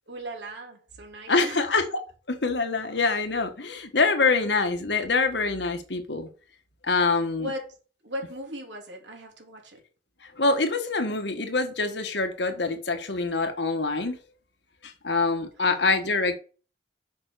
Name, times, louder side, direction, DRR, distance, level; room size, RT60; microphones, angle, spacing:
voice 1, 0.1-1.8 4.5-4.6 7.4-7.8 8.0-9.8 15.6-16.0, equal, 85° right, 3.1 m, -38 dB
voice 2, 1.3-1.8 2.3-6.3 6.8-7.5 10.4-14.2 14.8-16.3, left 3 dB, 70° left, 1.5 m, -25 dB
6.9 x 5.4 x 6.6 m
head